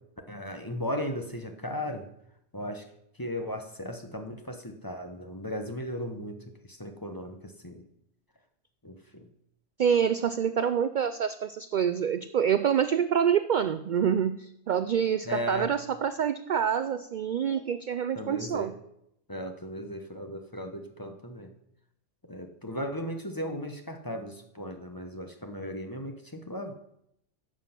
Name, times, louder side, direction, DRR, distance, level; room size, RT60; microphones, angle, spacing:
voice 1, 0.3-2.1 2.5-2.8 3.2-6.4 6.7-7.9 8.8-9.3 15.3-15.7 18.1-18.7 19.3-21.5 22.3-26.7, equal, 20° left, 5 dB, 1.0 m, -36 dB
voice 2, 9.8-18.7, right 8 dB, 60° right, 11 dB, 0.5 m, -26 dB
11.0 x 7.5 x 5.9 m, 0.77 s
omnidirectional pair, 1.2 m